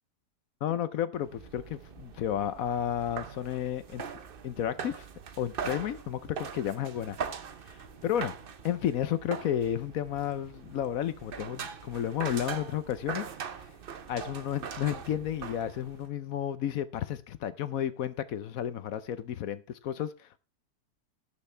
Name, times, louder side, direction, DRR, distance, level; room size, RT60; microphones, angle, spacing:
voice 1, 0.6-4.0 4.4-5.0 5.4-7.2 8.0-8.3 8.6-13.7 14.1-20.4, left 10 dB, 65° left, 0.9 m, -32 dB
sound 1, 1.2-16.1, right 6 dB, 55° right, 0.6 m, -41 dB
17.0 x 6.5 x 3.3 m
omnidirectional pair, 1.9 m